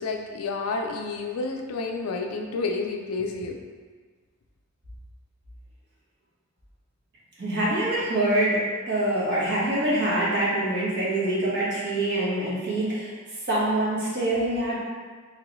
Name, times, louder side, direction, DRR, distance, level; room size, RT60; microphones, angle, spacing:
voice 1, 0.0-3.6, left 3 dB, 90° left, 3 dB, 0.4 m, -30 dB
voice 2, 7.4-8.6 8.9-13.1 13.5-14.8, right 1 dB, 50° right, -8 dB, 1.2 m, -25 dB
3.8 x 3.0 x 3.0 m, 1.5 s
head